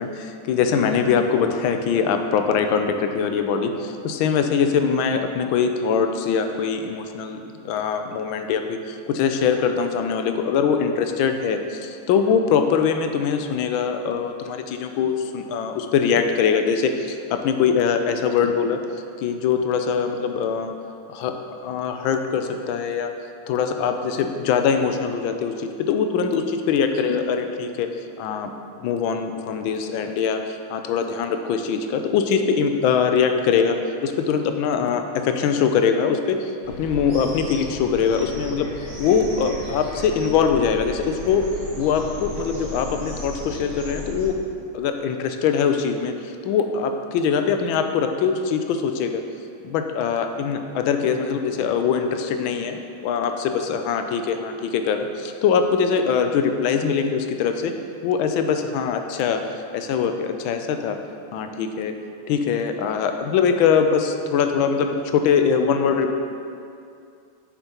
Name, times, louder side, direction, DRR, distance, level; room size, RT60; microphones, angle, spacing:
voice 1, 0.0-18.8 19.2-20.8 21.1-21.4 21.6-23.1 23.5-27.9 28.2-28.5 28.8-36.5 36.8-38.7 39.0-41.5 41.8-44.3 44.7-49.2 49.6-57.7 58.0-59.4 59.7-61.0 61.3-62.0 62.3-66.2, left 6 dB, 80° left, 6 dB, 1.3 m, -22 dB
sound 1, 36.6-44.3, equal, 35° right, 1.9 m, -35 dB
9.1 x 6.7 x 2.9 m, 2.4 s
omnidirectional pair, 2.2 m